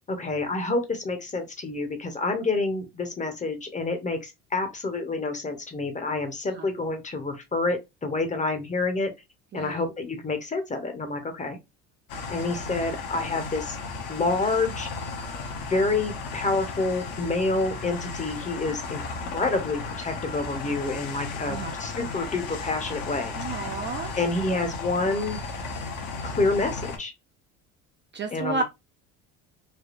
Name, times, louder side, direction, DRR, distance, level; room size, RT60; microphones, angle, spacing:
voice 1, 0.1-9.1 9.5-11.6 12.3-13.8 14.1-14.9 15.6-23.3 24.2-25.4 26.2-27.1 28.3-28.6, left 3 dB, 20° left, 0.8 m, -28 dB
sound 1, 12.1-27.0, left 4 dB, 65° left, 0.9 m, -35 dB
voice 2, 21.4-21.8 23.4-24.1 28.1-28.6, right 4 dB, 30° right, 0.4 m, -31 dB
3.4 x 2.3 x 2.4 m
supercardioid pair, 90°, 36 cm